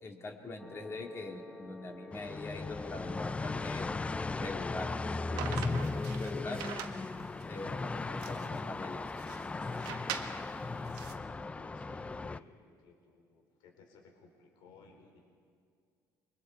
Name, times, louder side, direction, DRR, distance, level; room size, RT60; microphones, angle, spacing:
voice 1, 0.0-3.9 4.4-6.6 7.4-9.0, left 2 dB, 35° left, 2 dB, 2.4 m, -43 dB
sound 1, 0.6-11.4, left 1 dB, ahead, 2.1 m, -53 dB
sound 2, 2.1-12.4, left 3 dB, 15° left, 0.5 m, -37 dB
sound 3, 5.4-11.1, right 9 dB, 90° right, 1.5 m, -43 dB
voice 2, 10.7-15.2, left 4 dB, 80° left, 2 dB, 4.1 m, -58 dB
28.5 x 23.0 x 4.7 m, 2.2 s
cardioid pair, 120°, 8 cm